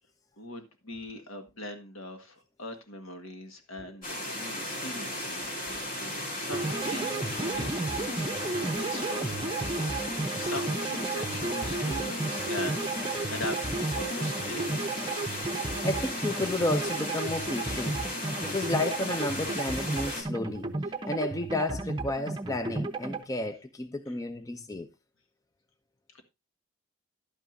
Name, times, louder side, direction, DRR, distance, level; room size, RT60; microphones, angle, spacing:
voice 1, 0.4-6.0 6.3-7.7 8.4-9.3 10.3-14.8, left 1 dB, 70° left, 1.8 m, -41 dB
sound 1, 4.0-20.2, left 1 dB, 40° left, 2.9 m, -35 dB
sound 2, 6.5-23.2, right 2 dB, 20° right, 0.7 m, -33 dB
voice 2, 15.8-24.9, left 1 dB, 15° left, 0.5 m, -32 dB
11.5 x 9.2 x 2.7 m
head